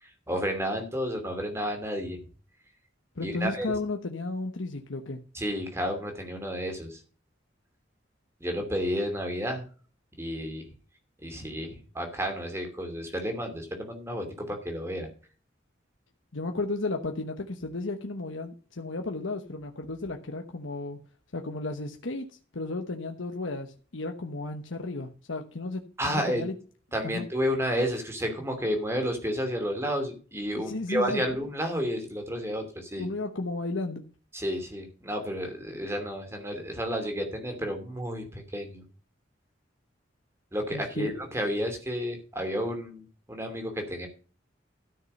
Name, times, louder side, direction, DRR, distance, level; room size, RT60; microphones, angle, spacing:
voice 1, 0.0-2.2 3.2-3.7 5.3-7.0 8.4-9.6 10.2-10.7 11.2-15.1 26.0-26.5 26.9-33.1 34.3-38.8 40.5-44.1, equal, 15° right, 2.7 m, -31 dB
voice 2, 3.1-5.2 16.3-21.0 21.3-26.5 27.0-27.3 30.5-31.2 33.0-34.0 40.7-41.1, left 2 dB, 90° left, 1.2 m, -34 dB
13.5 x 6.5 x 5.3 m
head